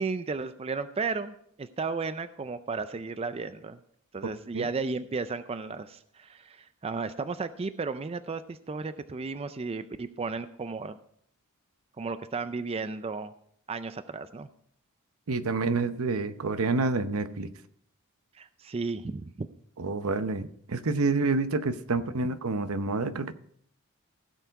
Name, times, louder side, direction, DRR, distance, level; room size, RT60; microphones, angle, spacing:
voice 1, 0.0-3.8 4.1-11.0 12.0-13.3 13.7-14.5 18.3-19.5, right 4 dB, 25° right, 12 dB, 0.4 m, -34 dB
voice 2, 15.3-17.5 19.8-23.3, right 3 dB, 70° right, 11 dB, 0.8 m, -28 dB
16.0 x 7.0 x 4.6 m, 0.66 s
head